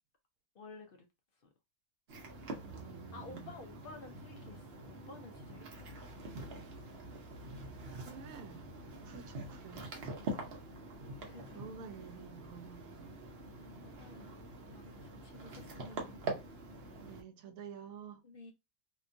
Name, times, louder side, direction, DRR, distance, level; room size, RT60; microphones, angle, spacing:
voice 1, 0.5-1.1 3.1-6.8 10.2-10.5 11.3-11.6 13.6-14.3 14.7-16.2 18.2-18.5, left 3 dB, 60° left, 0.5 m, -53 dB
sound 1, 2.1-17.2, right 2 dB, 50° right, 0.9 m, -45 dB
voice 2, 2.6-3.6 8.0-8.7 9.0-9.9 11.5-13.2 17.0-18.2, right 7 dB, 75° right, 1.0 m, -50 dB
2.8 x 2.3 x 2.5 m
omnidirectional pair, 1.5 m